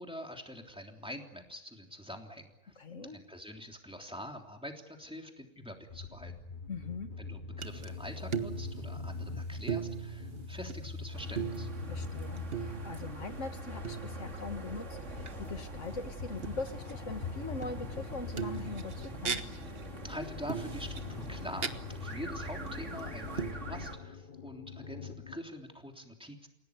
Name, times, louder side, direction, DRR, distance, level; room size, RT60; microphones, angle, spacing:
voice 1, 0.0-2.8 3.1-6.3 7.2-11.7 20.0-26.5, equal, 5° right, 2 dB, 3.3 m, -45 dB
voice 2, 2.8-3.2 6.7-7.1 11.9-19.4, left 3 dB, 75° left, 7 dB, 2.1 m, -41 dB
sound 1, 5.9-25.4, left 4 dB, 45° left, 1.4 m, -43 dB
sound 2, 7.6-7.9 8.2-9.4 9.7-10.9 11.2-13.3 13.8-14.6 15.2-15.4 16.4-17.1 17.6-18.0 18.4-19.8 20.5-21.7 22.1-22.2 22.7-23.0 23.4-23.5, right 7 dB, 55° right, 1.5 m, -39 dB
sound 3, 11.1-23.9, right 2 dB, 75° right, 3.0 m, -44 dB
30.0 x 17.5 x 9.6 m, 0.93 s
omnidirectional pair, 1.3 m